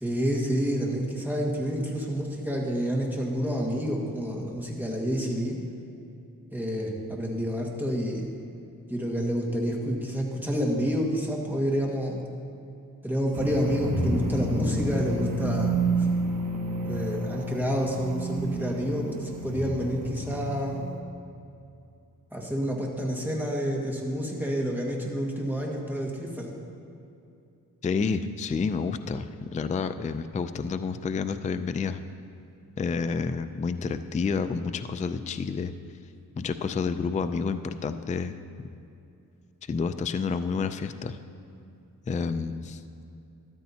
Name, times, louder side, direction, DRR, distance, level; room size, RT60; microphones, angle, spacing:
voice 1, 0.0-5.6 6.5-8.3 8.9-12.2 13.0-16.1 16.8-20.9 22.3-26.5, equal, 5° right, -2 dB, 1.7 m, -29 dB
sound 1, 13.3-21.0, right 2 dB, 70° right, 1.4 m, -29 dB
voice 2, 27.8-32.0 32.8-35.7 36.4-38.4 39.7-41.2 42.1-42.8, left 5 dB, 20° left, 10 dB, 0.3 m, -29 dB
13.5 x 12.5 x 2.8 m, 2.6 s
wide cardioid pair, 100°, 34 cm